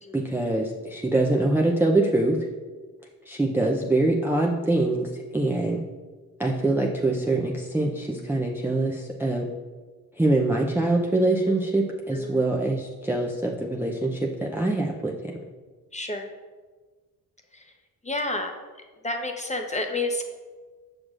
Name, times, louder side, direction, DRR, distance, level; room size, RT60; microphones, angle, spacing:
voice 1, 0.1-2.4 3.3-5.8 6.4-9.5 10.2-15.3, right 2 dB, 5° right, -1 dB, 0.6 m, -24 dB
voice 2, 12.1-12.4 15.9-16.3 17.5-17.6 18.0-18.5 19.0-20.2, left 2 dB, 15° left, 3 dB, 0.9 m, -29 dB
6.5 x 5.9 x 2.5 m, 1.4 s
supercardioid pair, 45°, 41 cm